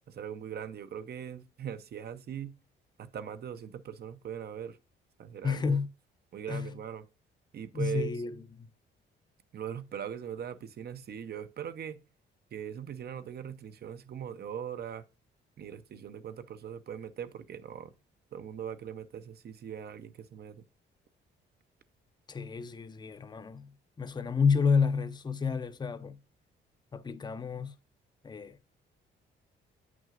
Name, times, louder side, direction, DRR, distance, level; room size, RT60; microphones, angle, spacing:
voice 1, 0.1-2.5 3.0-4.8 5.2-5.8 6.3-7.0 7.5-8.1 9.5-12.0 12.5-15.0 15.6-17.9 18.3-20.6, right 9 dB, 55° right, 0.7 m, -40 dB
voice 2, 5.4-5.9 6.5-6.7 7.7-8.7 22.3-23.7 24.0-26.2 26.9-27.7 28.2-28.6, left 5 dB, 20° left, 0.6 m, -30 dB
8.1 x 6.1 x 2.5 m
cardioid pair, 90°, 20 cm